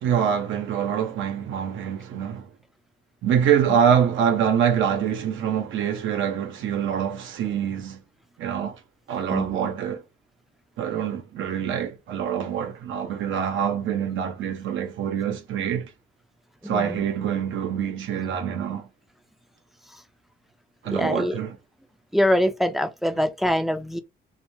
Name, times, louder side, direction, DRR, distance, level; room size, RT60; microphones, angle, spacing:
voice 1, 0.0-2.5 3.2-8.0 8.4-8.8 9.1-10.0 10.8-15.9 16.6-18.9 20.8-21.6, right 8 dB, 75° right, 0.7 m, -25 dB
voice 2, 16.6-17.0 20.9-21.4 22.1-24.0, equal, ahead, 0.4 m, -24 dB
2.2 x 2.1 x 3.1 m
cardioid pair, 90°, 20 cm